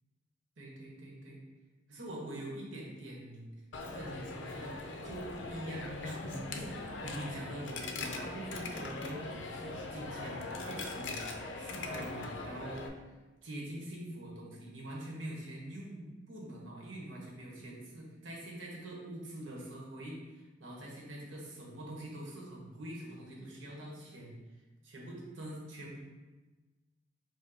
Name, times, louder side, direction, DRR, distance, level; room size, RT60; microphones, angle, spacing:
voice 1, 0.6-1.4 1.9-3.5 3.8-12.9 13.4-24.4 24.8-26.0, right 1 dB, 80° right, -2 dB, 1.2 m, -44 dB
Coin (dropping), 3.7-12.9, left 3 dB, 65° left, 0.5 m, -41 dB
4.8 x 2.3 x 4.8 m, 1.2 s
head